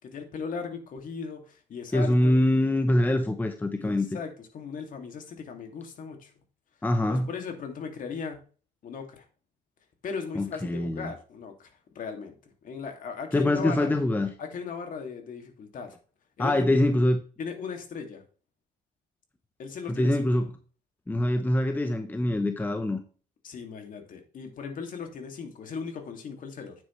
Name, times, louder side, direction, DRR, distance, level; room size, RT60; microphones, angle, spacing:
voice 1, 0.0-2.4 3.8-6.3 7.1-8.4 8.8-9.2 10.0-11.7 11.9-12.3 12.6-13.9 14.4-16.0 16.4-16.9 17.4-18.2 19.6-20.3 21.3-21.4 23.4-26.7, left 5 dB, 50° left, 2.5 m, -37 dB
voice 2, 1.9-4.1 6.8-7.3 10.3-11.1 13.3-14.3 16.4-17.2 19.9-20.5 21.1-23.0, left 1 dB, 10° left, 0.9 m, -24 dB
9.4 x 8.0 x 3.3 m
cardioid pair, 110°, 17 cm